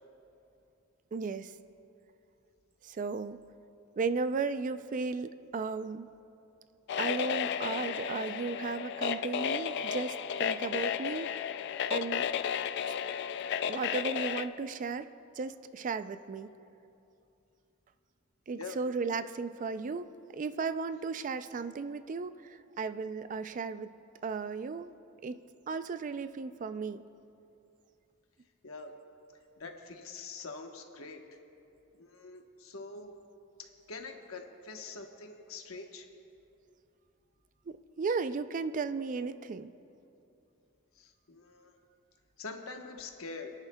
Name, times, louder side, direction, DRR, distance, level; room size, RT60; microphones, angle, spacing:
voice 1, 1.1-1.5 2.8-3.4 4.0-6.1 7.0-11.6 11.9-12.3 13.7-15.1 15.4-16.5 18.5-23.9 24.2-24.9 25.2-25.4 25.7-27.0 37.7-39.7, right 4 dB, 40° right, 12 dB, 0.3 m, -35 dB
sound 1, 6.9-14.5, left 8 dB, 55° left, 0.3 m, -33 dB
voice 2, 29.6-31.2 32.0-33.1 33.6-36.1 40.9-41.7 42.4-43.5, left 4 dB, 80° left, 3 dB, 1.1 m, -44 dB
28.5 x 10.5 x 2.2 m, 2.7 s
head